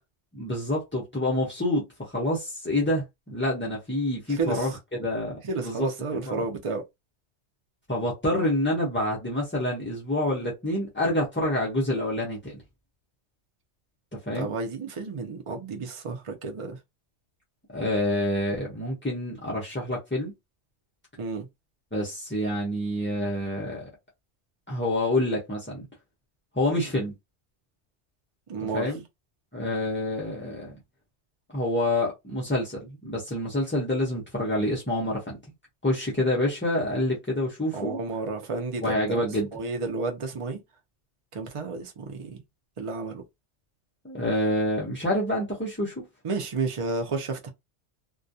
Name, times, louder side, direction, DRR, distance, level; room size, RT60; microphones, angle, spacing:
voice 1, 0.3-4.7 5.0-6.4 7.9-12.6 14.1-14.5 17.7-20.3 21.9-23.9 24.7-25.8 26.5-27.1 28.6-29.0 29.5-30.7 31.5-35.4 35.8-38.0 38.8-39.5 44.0-46.1, left 1 dB, 15° left, 0.4 m, -27 dB
voice 2, 4.3-4.7 5.4-6.8 14.3-16.8 21.2-21.5 28.5-28.9 37.7-38.9 39.5-40.6 41.3-42.4 42.8-43.2 46.2-47.5, right 4 dB, 40° right, 0.5 m, -31 dB
2.3 x 2.2 x 2.6 m
omnidirectional pair, 1.2 m